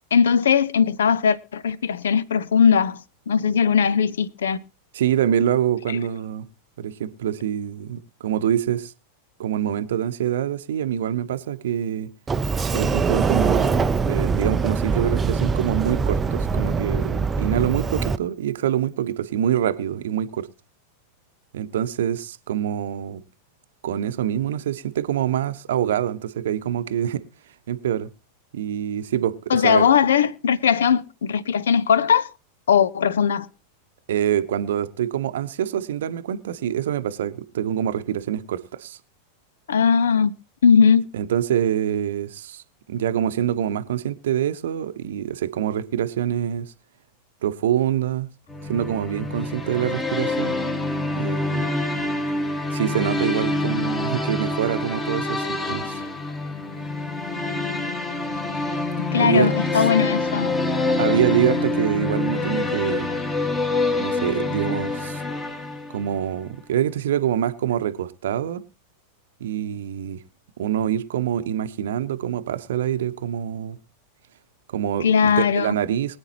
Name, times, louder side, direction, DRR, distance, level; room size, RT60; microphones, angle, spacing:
voice 1, 0.1-3.0 3.3-4.6 29.5-32.3 32.7-33.5 39.7-40.3 40.6-41.1 59.1-60.5 75.0-75.7, left 7 dB, 65° left, 0.7 m, -19 dB
voice 2, 4.9-6.5 6.8-8.9 9.4-12.1 12.7-20.5 21.5-23.2 23.8-27.2 27.7-28.1 28.5-29.9 34.1-39.0 41.1-42.6 42.9-46.7 47.4-48.3 48.7-50.6 51.2-51.7 52.7-56.0 59.2-59.8 61.0-63.1 64.0-65.2 65.9-68.6 69.4-70.2 70.6-73.8 74.7-76.2, right 10 dB, 60° right, 0.8 m, -25 dB
Sliding door, 12.3-18.2, right 5 dB, 15° right, 0.5 m, -23 dB
sound 1, 48.5-66.2, left 2 dB, 15° left, 1.7 m, -26 dB
24.0 x 8.8 x 2.9 m
figure-of-eight pair, 90°, 0 cm